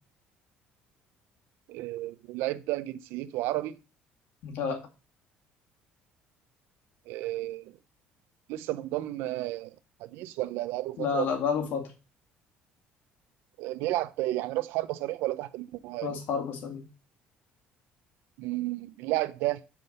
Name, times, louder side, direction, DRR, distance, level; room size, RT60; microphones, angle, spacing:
voice 1, 1.7-3.8 7.1-7.7 8.5-11.3 13.6-16.1 18.4-19.6, right 16 dB, 85° right, 0.7 m, -32 dB
voice 2, 4.4-4.8 11.0-11.9 16.0-16.8, left 6 dB, 65° left, 2.1 m, -30 dB
6.2 x 5.4 x 6.5 m
cardioid pair, 125°, 4 cm